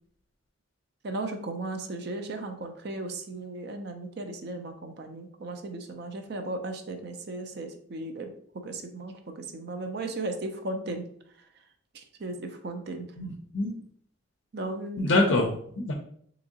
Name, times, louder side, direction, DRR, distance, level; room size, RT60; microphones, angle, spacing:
voice 1, 1.0-8.3 8.5-11.1 11.9-13.1 14.5-15.3, right 2 dB, 55° right, 6 dB, 0.4 m, -36 dB
voice 2, 13.2-13.8 15.0-15.9, left 2 dB, 60° left, 1 dB, 0.4 m, -26 dB
3.5 x 2.9 x 2.7 m, 0.63 s
head